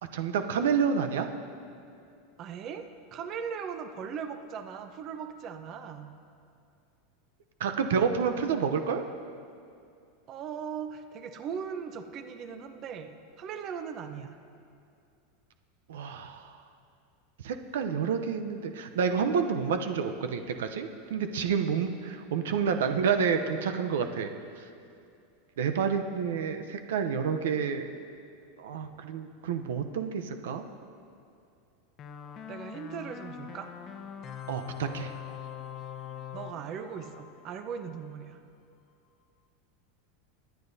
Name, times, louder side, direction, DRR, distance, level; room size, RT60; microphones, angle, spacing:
voice 1, 0.1-1.3 7.6-9.0 15.9-16.5 17.4-24.7 25.6-27.9 28.6-30.6 34.5-35.1, right 6 dB, 85° right, 7 dB, 0.7 m, -29 dB
voice 2, 2.4-6.1 10.3-14.4 32.5-33.7 36.3-38.4, right 7 dB, 40° right, 8 dB, 0.7 m, -39 dB
sound 1, 32.0-38.1, left 9 dB, 35° left, 0.8 m, -43 dB
23.5 x 9.1 x 2.7 m, 2.4 s
supercardioid pair, 135°, 0 cm